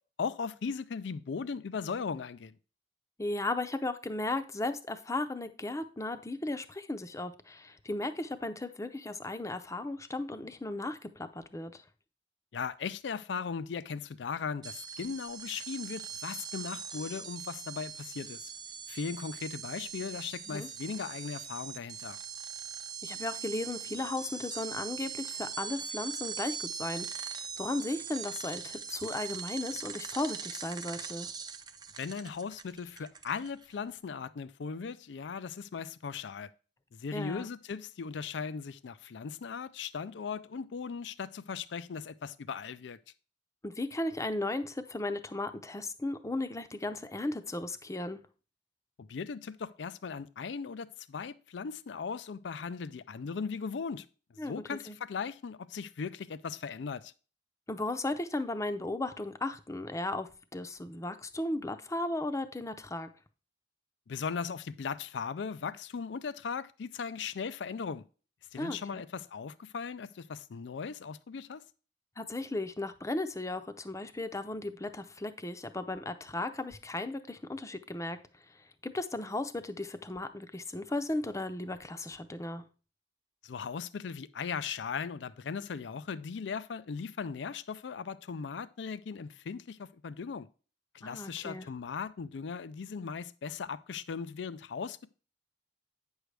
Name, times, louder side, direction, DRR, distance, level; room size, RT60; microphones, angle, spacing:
voice 1, 0.2-2.6 12.5-18.4 18.9-22.2 32.0-36.5 36.9-43.0 49.0-54.1 54.4-57.1 64.1-68.0 68.5-71.6 83.4-90.5 90.9-95.1, left 5 dB, 75° left, 0.4 m, -38 dB
voice 2, 3.2-11.8 20.5-20.7 23.0-31.3 37.1-37.5 43.6-48.2 54.4-55.0 57.7-63.1 68.6-69.0 72.2-78.2 78.8-82.6 91.0-91.7, left 2 dB, 15° left, 0.6 m, -36 dB
sound 1, 14.6-33.8, right 7 dB, 25° right, 0.6 m, -41 dB
9.0 x 6.3 x 3.3 m
head